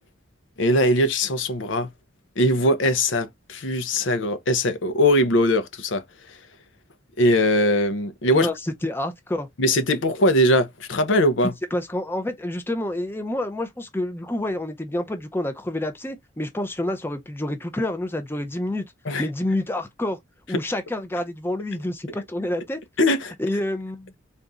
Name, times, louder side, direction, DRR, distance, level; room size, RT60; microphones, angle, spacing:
voice 1, 0.6-1.9 2.4-6.0 7.2-8.5 9.6-11.5 19.1-19.3 23.0-23.3, left 1 dB, 65° left, 0.7 m, -21 dB
voice 2, 8.3-9.5 11.7-18.8 19.2-20.2 20.5-22.8 23.4-24.1, left 1 dB, 10° left, 0.6 m, -28 dB
3.9 x 2.6 x 3.4 m
head